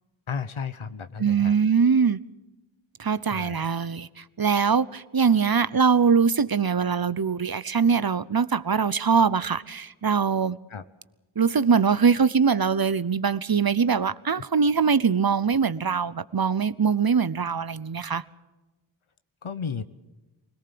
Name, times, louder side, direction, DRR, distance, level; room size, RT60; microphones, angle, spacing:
voice 1, 0.3-1.6 3.3-3.7 10.7-10.8 14.3-14.4 19.4-19.8, left 6 dB, 80° left, 1.0 m, -33 dB
voice 2, 1.2-2.2 3.0-10.6 11.4-18.2, right 6 dB, 50° right, 0.8 m, -22 dB
24.5 x 18.0 x 6.9 m
wide cardioid pair, 50°, 48 cm